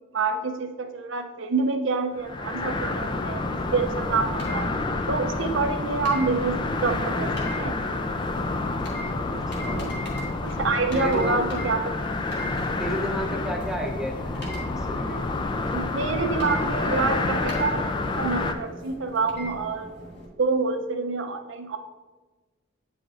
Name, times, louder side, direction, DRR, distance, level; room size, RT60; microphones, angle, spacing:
voice 1, 0.1-4.7 5.1-7.8 10.4-11.8 15.7-19.9 20.4-21.8, right 4 dB, 70° right, 7 dB, 0.6 m, -27 dB
sound 1, 2.2-18.5, left 2 dB, 25° left, 0.3 m, -29 dB
sound 2, 3.8-20.3, equal, 55° left, 1.4 m, -41 dB
voice 2, 9.2-9.9 10.9-11.5 12.8-15.4, equal, 5° right, -1 dB, 0.7 m, -32 dB
8.4 x 5.0 x 2.5 m, 1.2 s
head